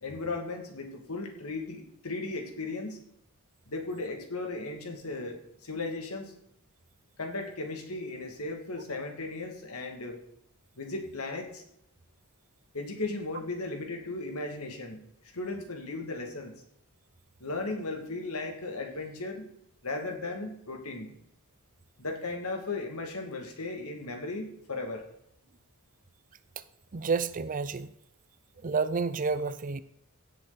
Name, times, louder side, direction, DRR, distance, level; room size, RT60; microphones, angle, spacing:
voice 1, 0.0-3.0 3.7-6.3 7.2-10.2 10.8-11.6 12.7-15.0 15.3-16.5 17.4-19.5 19.8-21.1 22.0-25.0, left 3 dB, 75° left, 2.4 m, -36 dB
voice 2, 26.9-27.9 28.6-29.8, right 4 dB, 40° right, 0.5 m, -29 dB
16.5 x 7.9 x 4.1 m
head